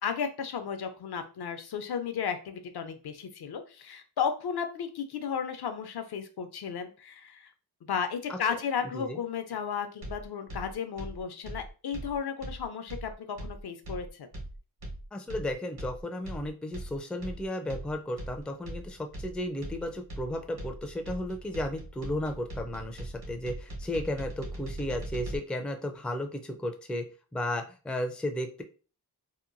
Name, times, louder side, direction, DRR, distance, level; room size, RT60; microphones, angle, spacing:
voice 1, 0.0-7.5 7.8-14.3, left 7 dB, 70° left, 7 dB, 0.5 m, -34 dB
sound 1, 10.0-25.4, right 1 dB, 70° right, 1.2 m, -40 dB
voice 2, 15.1-27.1 27.3-28.6, left 1 dB, 5° left, 5 dB, 0.3 m, -34 dB
2.8 x 2.2 x 2.5 m, 0.36 s
wide cardioid pair, 75°, 40 cm